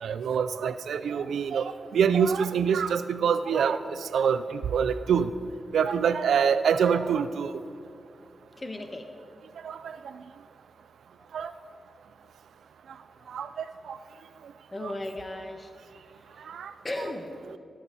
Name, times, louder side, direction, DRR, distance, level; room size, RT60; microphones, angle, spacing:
voice 1, 0.0-5.3 5.7-7.5 9.6-10.0 11.3-11.5 13.3-14.0 14.8-14.9 16.5-16.7, right 7 dB, 85° right, 13 dB, 0.4 m, -26 dB
voice 2, 8.5-9.1 9.8-10.0 11.2-11.3 12.9-13.7 14.7-16.5 16.8-17.6, left 1 dB, 30° left, 5 dB, 1.3 m, -39 dB
16.5 x 7.2 x 4.1 m, 2.4 s
cardioid pair, 50°, 0 cm